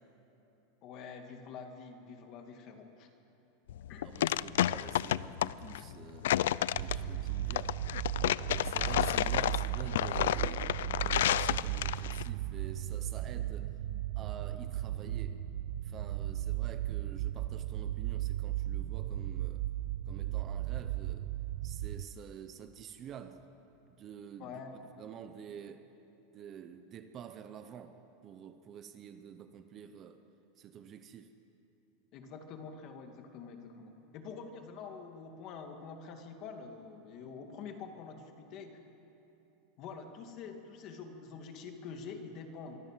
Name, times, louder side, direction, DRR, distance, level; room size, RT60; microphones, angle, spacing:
voice 1, 0.8-3.1 3.9-4.1 6.9-7.1 24.4-24.8 32.1-38.8 39.8-42.8, left 5 dB, 35° left, 5 dB, 2.2 m, -46 dB
sound 1, 3.7-12.3, left 12 dB, 90° left, 0.5 m, -31 dB
voice 2, 4.0-6.3 6.7-7.8 8.5-13.7 14.2-15.4 15.8-19.7 20.1-21.3 21.6-23.5 23.9-24.6 25.0-25.9 26.3-30.2 30.6-31.3, right 8 dB, 25° right, 9 dB, 0.8 m, -48 dB
sound 2, 6.7-22.0, right 14 dB, 60° right, 0.6 m, -36 dB
24.5 x 23.5 x 7.5 m, 3.0 s
supercardioid pair, 175°, 0 cm